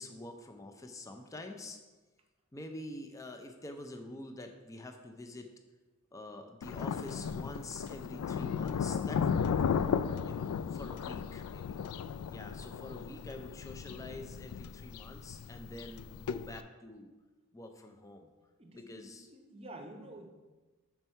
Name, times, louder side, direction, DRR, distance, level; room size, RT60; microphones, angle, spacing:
voice 1, 0.0-1.8 2.5-5.5 6.1-9.8 10.3-11.8 12.1-17.1 17.5-18.3 18.7-19.3, left 1 dB, 15° left, 4 dB, 0.5 m, -46 dB
Thunder, 6.6-16.6, left 7 dB, 80° left, 0.3 m, -35 dB
voice 2, 18.6-20.3, right 1 dB, 25° right, 4 dB, 0.7 m, -50 dB
5.9 x 4.5 x 5.4 m, 1.2 s
head